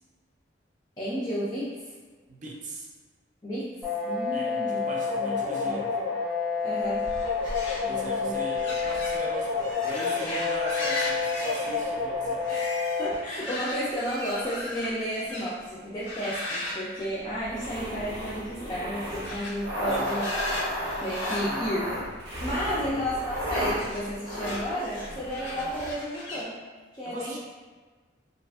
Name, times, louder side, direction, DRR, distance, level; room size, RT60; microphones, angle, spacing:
voice 1, 1.0-1.8 3.4-3.7 4.1-4.9 5.2-5.3 5.6-5.8 6.6-7.1 7.8-8.4 12.5-20.3 21.0-21.9 22.4-26.6 26.9-27.4, equal, 20° left, -9 dB, 0.3 m, -32 dB
voice 2, 2.3-2.9 4.3-6.0 7.8-12.7 19.9-20.3 21.4-21.8 22.7-23.0 27.0-27.4, right 1 dB, 40° right, -3 dB, 0.4 m, -39 dB
sound 1, 3.8-13.1, left 5 dB, ahead, 0.7 m, -29 dB
sound 2, 6.8-15.6 16.0-17.7 18.0-18.4 19.0-22.4 23.3-26.4, left 1 dB, 80° left, 0.5 m, -37 dB
sound 3, 17.4-25.9, equal, 80° right, 0.8 m, -33 dB
2.5 x 2.4 x 2.3 m, 1.4 s
head